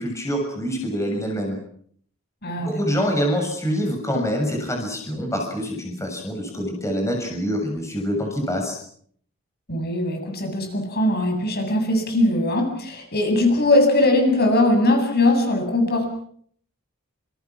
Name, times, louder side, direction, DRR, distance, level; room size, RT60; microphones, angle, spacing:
voice 1, 0.0-1.6 2.6-8.8, equal, 15° left, 2 dB, 7.0 m, -25 dB
voice 2, 2.4-3.0 9.7-16.1, left 1 dB, 50° left, 4 dB, 7.9 m, -20 dB
28.5 x 28.0 x 6.1 m, 0.63 s
head